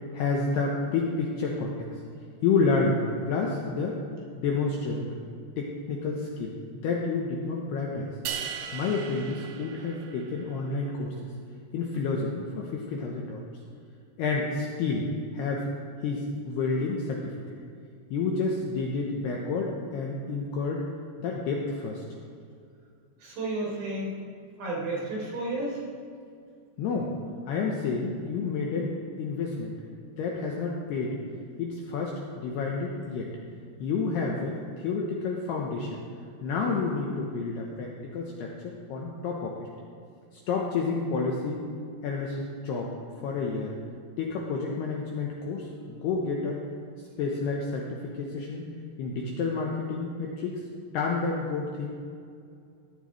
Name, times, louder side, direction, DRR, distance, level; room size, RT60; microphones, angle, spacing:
voice 1, 0.1-1.7 2.4-3.0 3.3-4.0 4.4-5.2 5.6-6.5 6.8-8.1 8.7-11.1 11.7-13.4 14.2-15.1 15.3-15.7 16.0-17.2 18.1-20.8 21.2-22.0 26.8-27.1 27.5-28.9 29.2-29.7 30.2-31.2 31.6-33.3 33.8-36.0 36.4-39.7 40.5-41.6 42.0-42.9 43.2-43.7 44.2-46.6 47.2-48.6 49.0-50.6 50.9-51.9, left 4 dB, 80° left, -1 dB, 2.5 m, -29 dB
sound 1, 8.3-10.6, right 8 dB, 85° right, 2.3 m, -37 dB
voice 2, 23.2-24.2 24.6-25.8, right 2 dB, 60° right, -5 dB, 5.5 m, -32 dB
18.0 x 12.5 x 3.3 m, 2.3 s
omnidirectional pair, 5.8 m